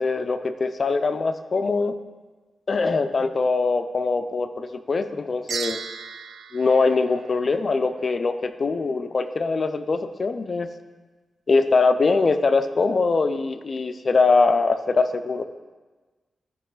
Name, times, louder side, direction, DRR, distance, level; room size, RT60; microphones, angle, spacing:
voice 1, 0.0-1.9 2.7-5.8 6.5-10.7 11.5-15.4, left 4 dB, 45° left, 9 dB, 0.5 m, -22 dB
sound 1, 5.5-7.9, right 6 dB, 85° right, 0.5 m, -36 dB
13.5 x 5.6 x 3.8 m, 1.3 s
wide cardioid pair, 125°, 0 cm